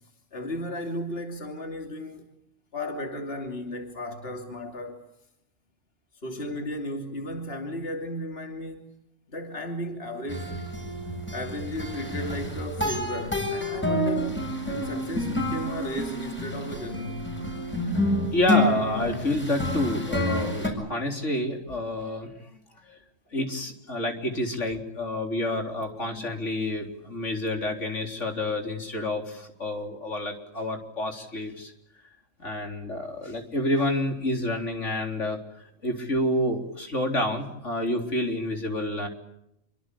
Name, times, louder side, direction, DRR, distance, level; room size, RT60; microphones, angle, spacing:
voice 1, 0.3-2.3 2.7-5.0 6.2-8.9 9.3-10.5 11.3-17.3, left 1 dB, 55° left, 3.3 m, -34 dB
sound 1, 10.3-20.7, left 1 dB, 10° left, 7.7 m, -29 dB
voice 2, 18.3-22.4 22.9-23.0 23.3-31.7 32.4-35.4 35.8-39.1, left 1 dB, 75° left, 4.2 m, -28 dB
27.5 x 25.0 x 8.5 m
omnidirectional pair, 1.3 m